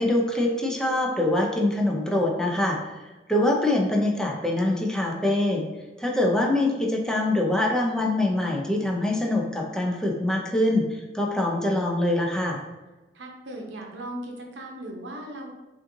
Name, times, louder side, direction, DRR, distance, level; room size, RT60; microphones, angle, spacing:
voice 1, 0.0-2.9 3.3-5.7 6.0-12.6, left 1 dB, 5° left, -1 dB, 0.5 m, -24 dB
voice 2, 13.1-15.5, right 1 dB, 80° right, 1 dB, 0.7 m, -37 dB
5.3 x 2.6 x 2.6 m, 1.1 s
head